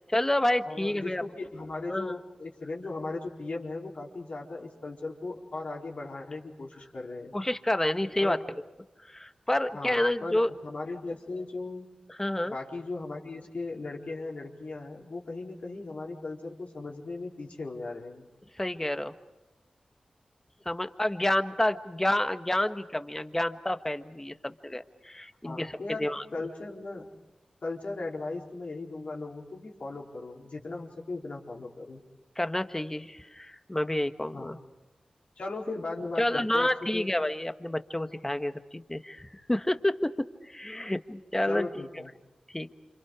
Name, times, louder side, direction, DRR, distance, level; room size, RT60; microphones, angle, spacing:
voice 1, 0.1-1.2 1.9-2.1 7.3-8.4 9.1-10.5 12.2-12.5 18.6-19.1 20.6-26.2 32.4-34.6 36.2-41.9 42.5-42.7, left 1 dB, 15° left, 9 dB, 1.4 m, -29 dB
voice 2, 0.7-7.3 8.2-8.4 9.7-11.9 12.4-18.2 25.4-26.1 26.3-27.1 27.6-32.0 34.3-34.5 35.4-37.1 41.5-42.1, left 3 dB, 65° left, -1 dB, 4.4 m, -37 dB
29.5 x 27.0 x 5.0 m, 1.1 s
cardioid pair, 50°, 2 cm